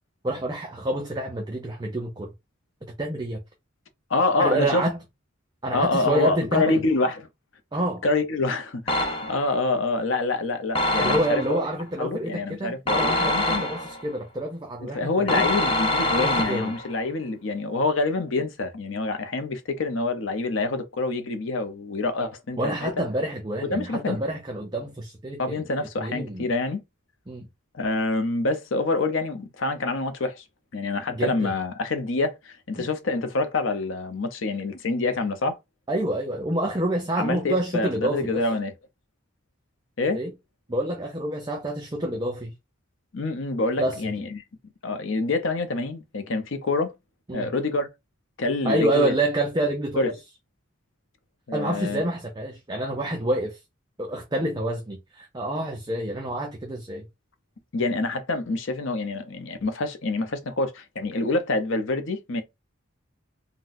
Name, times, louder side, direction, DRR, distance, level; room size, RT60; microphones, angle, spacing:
voice 1, 0.2-2.3 3.0-3.4 4.4-5.0 5.6-6.8 7.7-8.0 11.0-15.5 16.2-16.7 22.6-26.5 27.3-27.5 31.1-31.5 32.8-32.9 35.9-38.4 40.1-40.3 40.7-42.5 43.8-44.1 47.3-47.5 48.6-50.1 51.5-53.6 54.0-57.0, right 1 dB, 20° right, 0.5 m, -28 dB
voice 2, 4.1-4.8 5.7-7.3 8.0-11.6 12.0-13.7 14.8-22.9 23.7-24.2 25.4-26.8 27.7-30.4 30.7-35.6 37.2-38.7 40.0-40.2 43.1-44.4 44.8-46.9 47.3-47.9 48.4-49.1 50.0-50.1 51.5-52.0 57.7-62.4, left 3 dB, 65° left, 0.6 m, -26 dB
sound 1, 8.9-9.6 10.7-11.6 12.9-14.1 15.3-16.9, left 1 dB, 25° left, 0.6 m, -25 dB
3.9 x 2.2 x 2.5 m
head